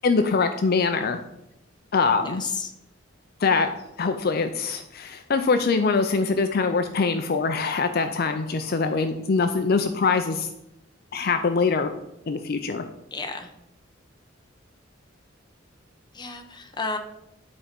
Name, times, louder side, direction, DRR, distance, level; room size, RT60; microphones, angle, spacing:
voice 1, 0.0-1.2 1.9-2.4 3.4-3.7 4.0-10.5 11.1-11.9 12.3-12.8, left 4 dB, 50° left, 7 dB, 0.5 m, -23 dB
voice 2, 2.2-2.7 13.1-13.5 16.1-17.0, left 4 dB, 25° left, 5 dB, 0.8 m, -32 dB
9.7 x 4.3 x 5.2 m, 0.86 s
head